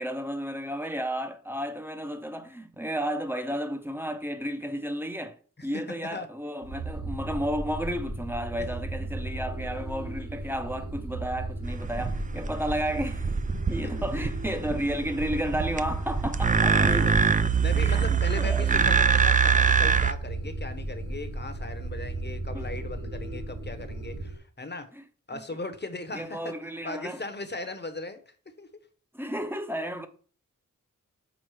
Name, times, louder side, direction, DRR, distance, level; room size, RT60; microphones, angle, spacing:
voice 1, 0.0-5.4 5.6-13.3 13.7-17.1 17.7-18.9 22.5-22.7 25.3-25.4 26.1-27.2 29.1-30.1, equal, 5° right, 0.8 m, -32 dB
sound 1, 6.6-24.4, right 2 dB, 65° right, 2.3 m, -36 dB
sound 2, 11.7-20.1, right 6 dB, 25° right, 0.4 m, -24 dB
voice 2, 16.6-17.2 17.6-24.9 25.3-26.5 26.8-28.2 28.6-28.7, left 2 dB, 35° left, 1.0 m, -38 dB
6.3 x 3.7 x 4.8 m
wide cardioid pair, 60°, 32 cm